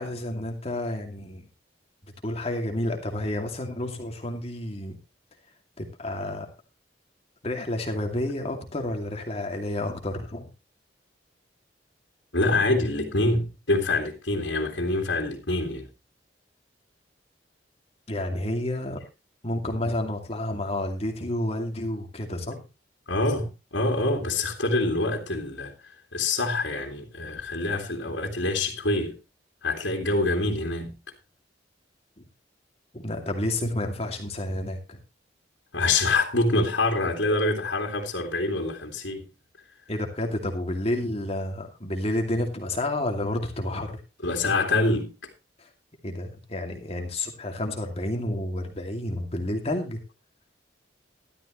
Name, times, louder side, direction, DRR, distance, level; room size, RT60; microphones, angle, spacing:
voice 1, 0.0-1.5 2.2-5.0 5.8-6.5 7.4-10.5 18.1-19.0 19.4-22.6 32.2-32.3 32.9-35.0 39.9-44.0 45.6-45.7 46.0-50.0, left 1 dB, 35° left, 2.5 m, -30 dB
voice 2, 12.3-15.9 23.1-25.7 26.1-29.1 29.6-30.9 35.7-39.3 44.2-45.1, left 2 dB, 85° left, 2.6 m, -25 dB
13.5 x 12.5 x 3.1 m
head